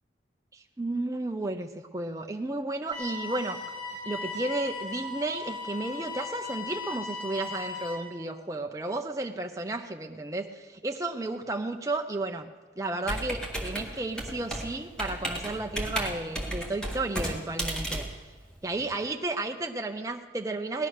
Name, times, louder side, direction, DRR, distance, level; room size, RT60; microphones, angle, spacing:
voice 1, 0.5-3.6 4.1-12.5 12.8-18.0 18.6-20.9, right 2 dB, 20° right, 3 dB, 0.5 m, -33 dB
sound 1, 2.9-7.9, left 4 dB, 20° left, 4.9 m, -37 dB
Computer keyboard, 13.0-19.0, right 1 dB, 5° left, 1.9 m, -34 dB
18.5 x 12.0 x 6.4 m, 1.4 s
head